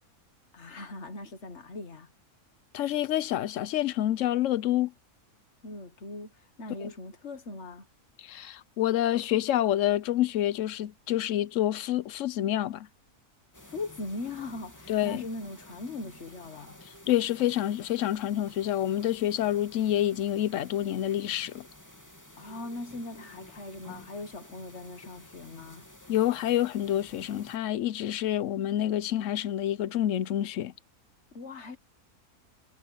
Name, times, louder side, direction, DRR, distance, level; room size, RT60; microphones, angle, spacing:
voice 1, 0.5-2.1 5.6-7.9 13.7-16.7 22.4-25.9 31.3-31.8, left 2 dB, 45° left, 1.9 m, -40 dB
voice 2, 2.7-4.9 6.8-6.9 8.2-12.9 14.9-15.2 17.1-21.6 26.1-30.7, left 12 dB, 65° left, 0.9 m, -28 dB
sound 1, 13.5-27.6, left 1 dB, 10° left, 3.0 m, -52 dB
omnidirectional pair, 1.6 m